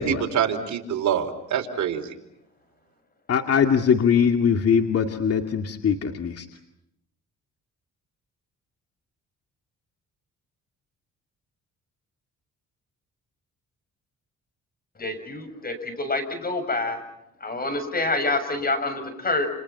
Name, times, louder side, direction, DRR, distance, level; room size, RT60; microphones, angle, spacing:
voice 1, 0.0-2.0, right 8 dB, 70° right, 3 dB, 4.4 m, -25 dB
voice 2, 3.3-6.5, left 7 dB, 50° left, 5 dB, 2.3 m, -21 dB
voice 3, 15.0-17.0 17.4-19.5, left 2 dB, 30° left, 9 dB, 6.8 m, -27 dB
29.5 x 29.5 x 5.9 m, 0.80 s
cardioid pair, 90°, 30 cm